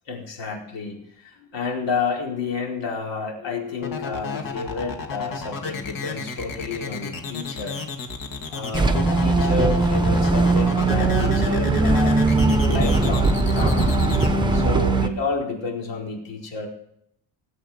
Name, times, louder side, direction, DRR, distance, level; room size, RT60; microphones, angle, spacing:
voice 1, 0.1-7.8 8.5-12.2 12.7-14.0 14.5-16.7, left 4 dB, 75° left, -1 dB, 4.7 m, -30 dB
sound 1, 3.8-14.3, left 5 dB, 45° left, 2.1 m, -33 dB
sound 2, 8.7-15.1, right 3 dB, 10° right, 1.0 m, -19 dB
19.0 x 8.3 x 7.3 m, 0.75 s
cardioid pair, 155°, 45 cm